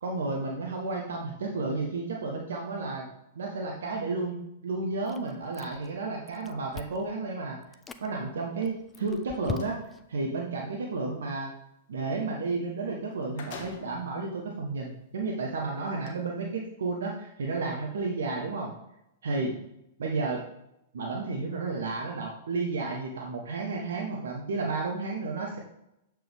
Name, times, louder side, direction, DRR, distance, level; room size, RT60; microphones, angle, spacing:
voice 1, 0.0-3.1 3.3-4.4 4.6-7.6 8.0-9.8 10.1-11.5 11.9-18.7 19.2-19.5 20.0-20.4 20.9-25.6, right 3 dB, 75° right, 0 dB, 1.1 m, -32 dB
Chewing mastication, 5.1-6.0 6.3-7.1 7.6-8.1 8.6-10.1, left 5 dB, 15° left, 0.5 m, -40 dB
sound 1, 8.8-9.8 12.6-12.7 13.0-14.1 14.8-14.9 15.9-16.1, left 5 dB, 50° left, 1.4 m, -45 dB
7.8 x 4.6 x 3.5 m, 0.82 s
hypercardioid pair, 110°, 0 cm